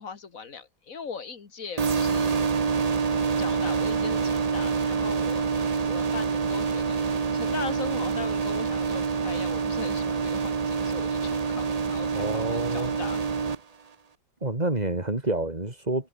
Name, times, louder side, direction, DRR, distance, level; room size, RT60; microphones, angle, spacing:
voice 1, 0.0-2.4 3.4-5.5 5.7-13.2, left 5 dB, 45° left, 2.3 m, -39 dB
sound 1, 1.8-13.6, right 5 dB, 80° right, 0.3 m, -26 dB
voice 2, 12.1-12.9 14.4-16.1, right 2 dB, 20° right, 3.3 m, -28 dB
omnidirectional pair, 2.1 m